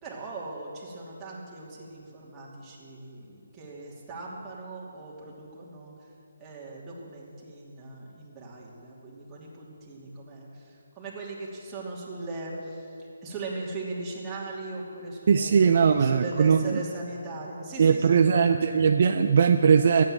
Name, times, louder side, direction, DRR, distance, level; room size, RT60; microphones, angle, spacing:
voice 1, 0.0-5.9 6.4-12.8 13.2-18.8, right 2 dB, 15° right, -5 dB, 2.8 m, -39 dB
voice 2, 15.3-16.8 17.8-20.0, right 6 dB, 50° right, 7 dB, 0.5 m, -20 dB
13.0 x 9.4 x 7.7 m, 2.9 s
figure-of-eight pair, 150°, 0 cm